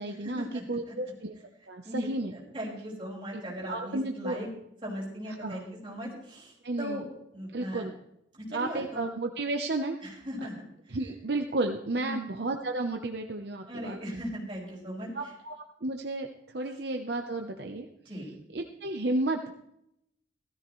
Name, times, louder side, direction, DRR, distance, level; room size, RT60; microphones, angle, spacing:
voice 1, 0.0-1.4 1.7-2.3 3.3-3.4 3.7-4.4 5.3-5.6 6.6-7.1 7.5-7.9 8.5-10.0 10.9-14.2 15.1-17.9 18.2-19.4, right 2 dB, 60° right, 4 dB, 0.8 m, -33 dB
voice 2, 2.5-4.5 4.8-6.5 6.8-7.0 7.3-7.8 8.3-9.0 10.2-10.5 10.9-11.0 12.0-12.1 13.7-15.1 18.1-18.3, equal, 25° right, -4 dB, 5.3 m, -38 dB
16.0 x 13.5 x 3.1 m, 0.78 s
head